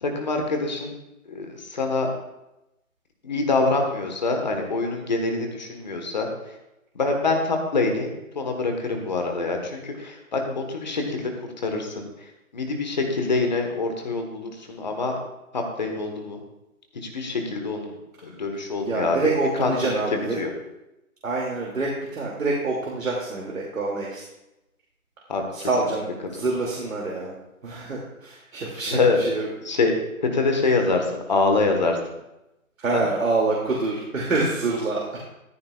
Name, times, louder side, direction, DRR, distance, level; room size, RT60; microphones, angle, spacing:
voice 1, 0.0-1.0 1.3-2.1 3.2-6.3 6.9-11.3 11.6-12.0 12.5-15.1 15.5-16.4 17.0-17.9 18.2-19.3 19.6-19.7 20.4-20.5 25.3-25.7 28.9-29.2 29.6-29.9 30.2-32.0 32.9-33.1, left 3 dB, 30° left, 3 dB, 1.4 m, -25 dB
voice 2, 18.8-20.4 21.2-24.2 25.5-27.3 27.6-29.5 32.8-35.2, right 3 dB, 65° right, -3 dB, 2.6 m, -26 dB
14.0 x 13.0 x 2.4 m, 0.91 s
hypercardioid pair, 170°, 43 cm